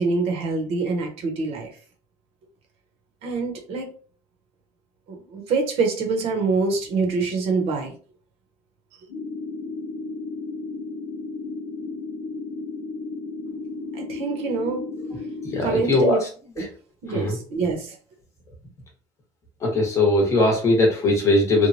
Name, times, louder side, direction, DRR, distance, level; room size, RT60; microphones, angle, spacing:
voice 1, 0.0-1.7 3.2-3.9 5.1-7.9 13.9-14.9 15.6-16.2 16.6-16.7 17.0-18.0, right 4 dB, 60° right, 3 dB, 0.8 m, -25 dB
sound 1, 9.1-15.6, left 3 dB, 85° left, 0.9 m, -33 dB
voice 2, 15.5-16.3 16.6-16.7 17.1-17.4 19.6-21.7, left 2 dB, 25° left, 0 dB, 0.9 m, -20 dB
3.1 x 2.1 x 2.6 m, 0.39 s
cardioid pair, 160°, 12 cm